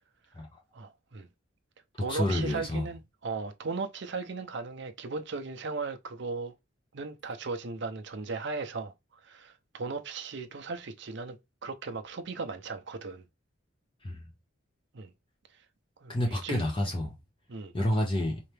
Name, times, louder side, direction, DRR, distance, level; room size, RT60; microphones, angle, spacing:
voice 1, 0.7-1.3 2.0-6.5 6.9-8.9 9.2-13.2 14.9-15.1 16.0-16.6 17.5-17.7, right 4 dB, 60° right, 0.6 m, -37 dB
voice 2, 2.1-2.9 14.0-14.2 16.1-17.1 17.7-18.4, left 1 dB, 25° left, 0.8 m, -29 dB
4.4 x 2.8 x 3.3 m
head